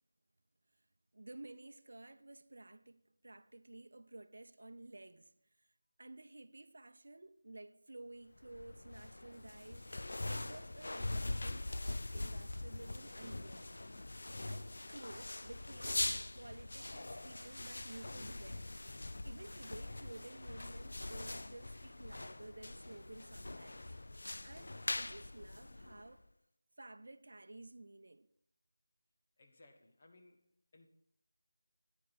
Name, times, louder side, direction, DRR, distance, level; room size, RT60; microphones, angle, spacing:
voice 1, 1.1-5.3 5.6-5.7 6.0-13.7 14.5-16.1 16.3-18.7 19.2-23.9 24.4-26.3 26.8-28.3, right 2 dB, 65° right, 0.6 m, -53 dB
sound 1, 8.4-26.2, left 2 dB, 65° left, 0.4 m, -43 dB
voice 2, 29.4-30.5 30.7-30.9, left 2 dB, 35° left, 1.2 m, -63 dB
9.9 x 9.6 x 4.1 m
figure-of-eight pair, 170°, 0 cm